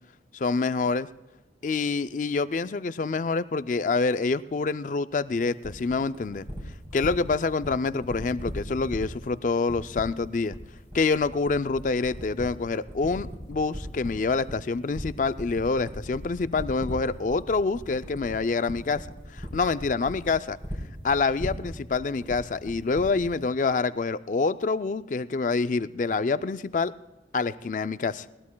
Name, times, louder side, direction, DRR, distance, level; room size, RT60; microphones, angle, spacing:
voice 1, 0.3-1.1 1.6-6.4 6.9-10.6 10.9-19.1 19.3-20.6 21.0-26.9 27.3-28.2, left 4 dB, 45° left, 13 dB, 0.4 m, -26 dB
sound 1, 5.6-23.4, equal, 35° right, 3.6 m, -37 dB
21.0 x 19.0 x 2.2 m, 1.1 s
head